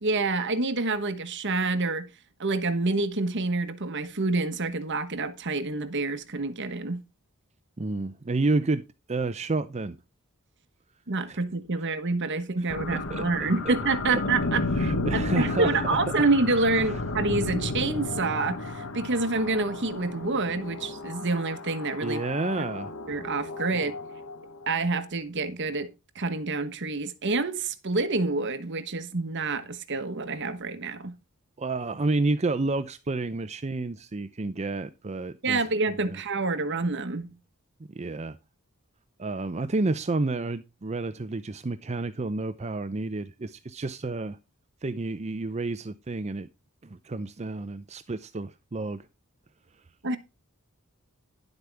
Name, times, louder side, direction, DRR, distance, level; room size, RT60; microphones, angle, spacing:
voice 1, 0.0-2.1 2.4-7.0 11.1-22.2 23.1-23.9 24.7-31.1 35.4-37.3 50.0-50.2, right 3 dB, 55° right, 1.2 m, -27 dB
voice 2, 7.8-8.8 9.1-10.0 11.3-11.4 12.6-13.7 14.1-14.2 14.8-16.0 16.8-16.9 22.0-22.9 23.7-23.9 31.6-35.6 35.9-36.2 37.9-38.4 39.2-44.4 44.8-46.5 46.8-49.0, right 3 dB, 30° right, 0.6 m, -30 dB
sound 1, 12.7-24.7, left 2 dB, 75° left, 1.2 m, -33 dB
11.0 x 8.0 x 3.4 m
head